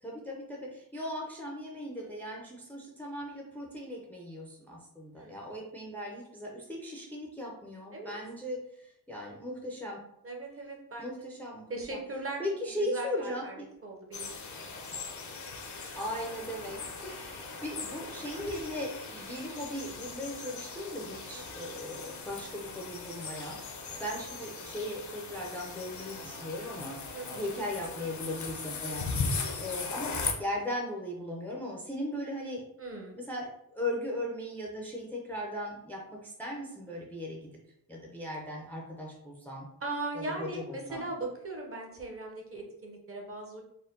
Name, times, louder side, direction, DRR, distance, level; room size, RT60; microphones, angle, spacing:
voice 1, 0.0-10.0 11.0-12.0 12.4-13.6 16.0-23.6 24.0-32.6 33.1-37.4 37.9-39.7 40.2-41.1, left 1 dB, 5° left, -2 dB, 0.5 m, -38 dB
voice 2, 2.0-2.3 5.2-5.5 7.9-8.1 10.2-11.1 11.7-12.5 12.8-14.3 17.0-17.1 21.3-21.6 27.1-27.5 32.8-33.2 39.8-43.6, right 2 dB, 35° right, 0 dB, 0.8 m, -39 dB
sound 1, 14.1-30.3, left 4 dB, 45° left, 0.6 m, -39 dB
4.4 x 2.2 x 3.7 m, 0.77 s
wide cardioid pair, 135°, 41 cm